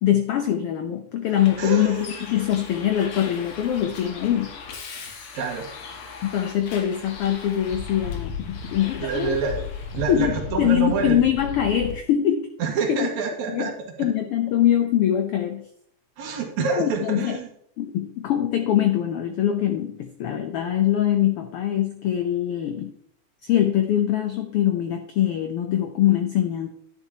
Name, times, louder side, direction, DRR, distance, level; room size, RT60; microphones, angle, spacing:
voice 1, 0.0-4.6 6.2-9.4 10.1-12.5 12.9-13.1 13.5-13.7 14.0-15.7 16.6-17.4 17.8-22.9 23.4-26.7, left 11 dB, 85° left, 7 dB, 1.2 m, -23 dB
Bus, 1.4-11.9, left 5 dB, 55° left, 1.8 m, -36 dB
voice 2, 1.6-2.2 5.3-5.7 9.0-9.6 9.9-11.2 12.6-13.7 14.0-14.1 16.2-17.5, right 5 dB, 70° right, 2 dB, 2.8 m, -27 dB
10.5 x 9.9 x 2.9 m, 0.69 s
omnidirectional pair, 3.5 m